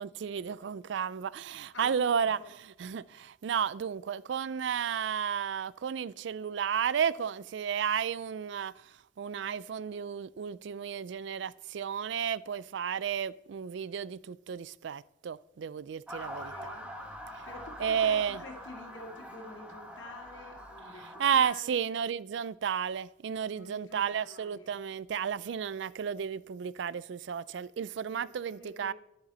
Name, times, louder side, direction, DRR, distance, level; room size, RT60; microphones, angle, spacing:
voice 1, 0.0-8.7 9.2-16.7 17.8-18.4 21.2-28.9, right 7 dB, 65° right, 0.4 m, -32 dB
voice 2, 1.7-2.5 16.2-17.2 17.5-21.9 23.5-24.7 28.0-28.9, left 3 dB, 75° left, 2.4 m, -48 dB
Motor vehicle (road) / Siren, 16.1-21.4, equal, 5° right, 1.4 m, -44 dB
11.5 x 10.5 x 4.1 m
head